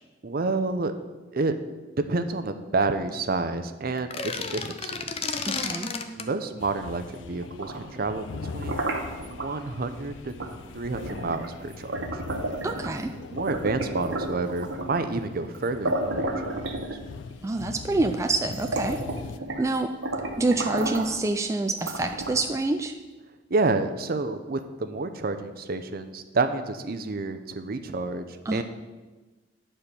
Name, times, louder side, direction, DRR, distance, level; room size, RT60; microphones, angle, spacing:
voice 1, 0.2-0.9 1.3-1.5 2.1-4.9 6.2-8.8 9.2-10.3 10.7-12.0 13.3-16.3 23.5-28.2 28.5-28.6, right 3 dB, 55° right, 9 dB, 0.6 m, -29 dB
sound 1, 4.0-6.3, left 4 dB, 30° left, 0.6 m, -32 dB
voice 2, 5.4-5.9 12.6-13.1 17.4-19.0 19.6-19.9 20.4-23.0 28.5-28.6, right 2 dB, 15° right, 5 dB, 0.3 m, -26 dB
sound 2, 6.6-19.4, left 4 dB, 75° left, 0.4 m, -42 dB
sound 3, 7.4-9.5 10.4-10.6 11.0-13.0 13.4-15.0 15.5-15.6 15.8-17.3 18.0-18.1 18.4-19.7 20.0-21.2 21.8-22.6, right 2 dB, 80° right, 1.2 m, -32 dB
9.7 x 4.4 x 6.8 m, 1.2 s
head